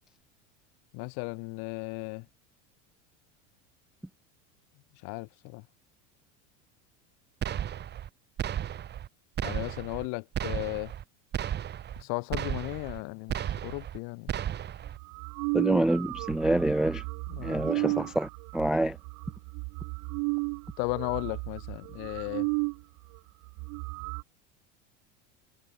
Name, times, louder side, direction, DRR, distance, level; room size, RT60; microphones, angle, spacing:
voice 1, 0.9-2.2 5.0-5.6 9.4-10.9 12.0-14.3 17.3-18.1 20.8-22.5, left 36 dB, 60° left, 3.9 m, -35 dB
sound 1, 7.4-8.1 8.4-9.1 9.4-10.1 10.3-11.0 11.3-12.0 12.3-13.0 13.3-14.0 14.3-15.0, right 10 dB, 25° right, 1.6 m, -34 dB
sound 2, 14.9-22.8 23.1-23.2 23.5-24.2, right 34 dB, 55° right, 3.6 m, -34 dB
voice 2, 15.5-17.0 17.4-18.3 18.5-18.9, right 1 dB, ahead, 0.3 m, -26 dB
supercardioid pair, 145°, 39 cm